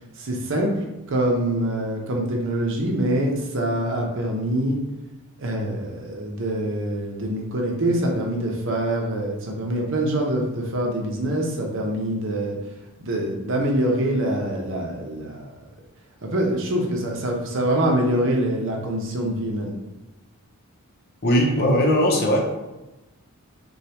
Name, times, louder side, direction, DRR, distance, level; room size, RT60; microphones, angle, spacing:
voice 1, 0.2-0.7 1.1-4.8 5.4-12.6 13.0-15.5 16.2-19.7, right 1 dB, 55° right, 0 dB, 0.8 m, -24 dB
voice 2, 21.2-22.4, equal, 45° left, 0 dB, 0.7 m, -19 dB
6.5 x 2.3 x 2.9 m, 1.0 s
head